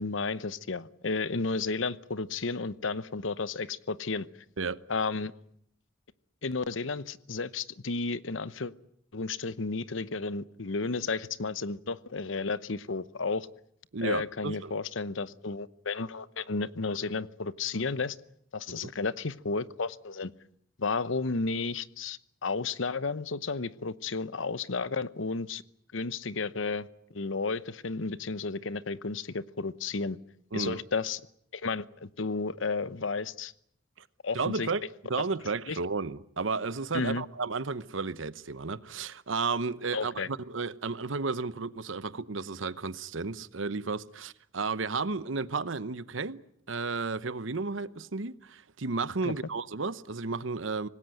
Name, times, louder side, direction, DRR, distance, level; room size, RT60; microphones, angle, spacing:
voice 1, 0.0-4.3 4.9-5.3 6.4-8.7 9.1-13.5 14.0-18.2 18.5-20.3 20.8-25.6 25.9-26.9 27.1-30.2 30.5-31.2 31.5-33.5 34.2-34.7 35.7-35.8 36.9-37.2 39.9-40.3 49.2-49.3, left 4 dB, 85° left, 0.9 m, -32 dB
voice 2, 13.9-14.7 18.7-18.9 30.5-30.8 34.0-34.1 34.3-46.4 46.7-50.9, right 4 dB, 85° right, 0.9 m, -33 dB
25.5 x 19.5 x 9.1 m
head